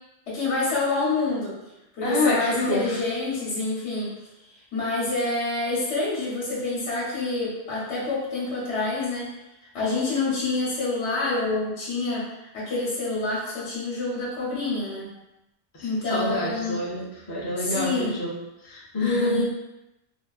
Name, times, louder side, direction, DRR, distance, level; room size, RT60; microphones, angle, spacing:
voice 1, 0.3-1.6 1.9-4.1 4.7-9.3 9.7-15.1 15.8-16.8 17.6-18.2 19.0-19.4, left 3 dB, 75° left, -6 dB, 1.0 m, -27 dB
voice 2, 2.0-3.0 15.7-18.3 18.6-19.4, left 2 dB, 40° left, -5 dB, 0.3 m, -28 dB
2.4 x 2.3 x 2.2 m, 0.93 s
omnidirectional pair, 1.2 m